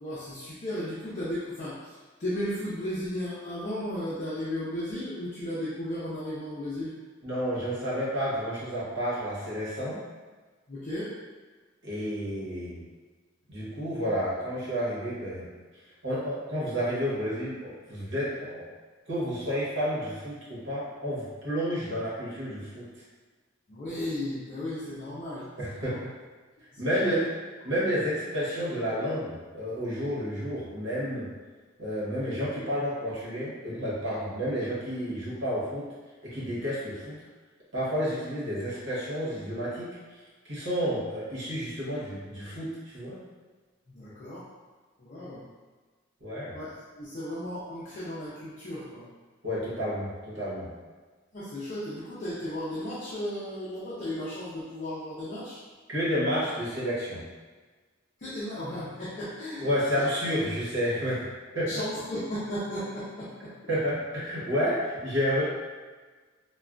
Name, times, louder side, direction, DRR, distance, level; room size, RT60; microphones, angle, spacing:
voice 1, 0.0-6.9 10.7-11.2 23.7-26.0 26.7-27.2 43.9-44.5 45.0-45.4 46.5-46.7 46.9-49.1 51.3-55.6 58.2-59.7 61.5-63.5, left 1 dB, 40° left, -9 dB, 0.5 m, -35 dB
voice 2, 7.2-10.0 11.8-12.8 13.5-15.5 16.0-18.7 19.1-22.9 25.6-26.1 26.8-27.3 27.6-31.3 31.8-35.9 36.2-37.2 37.7-40.0 40.5-43.2 46.2-46.6 49.4-50.7 55.9-57.2 59.6-61.3 61.5-61.8 63.7-65.4, equal, 65° right, -8 dB, 1.1 m, -30 dB
3.3 x 2.2 x 2.4 m, 1.4 s
head